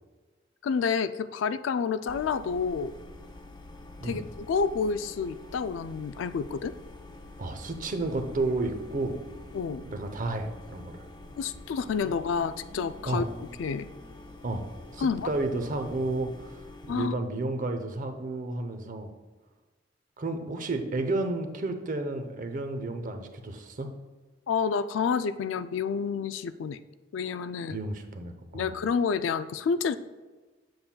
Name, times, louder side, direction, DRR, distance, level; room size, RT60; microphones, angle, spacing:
voice 1, 0.6-2.9 4.0-6.7 9.5-9.8 11.4-13.9 15.0-15.3 16.9-17.1 24.5-26.8 27.1-27.8 28.5-30.0, left 5 dB, 75° left, 12 dB, 0.3 m, -29 dB
sound 1, 2.1-17.1, left 2 dB, 25° left, 0.6 m, -47 dB
voice 2, 7.4-9.2 9.8-11.1 13.0-13.3 14.4-16.6 16.9-19.1 20.2-23.9 27.7-28.8, right 2 dB, 45° right, 7 dB, 0.7 m, -32 dB
sound 2, 8.0-16.3, equal, 20° right, 1.8 m, -51 dB
7.7 x 7.0 x 2.3 m, 1.3 s
head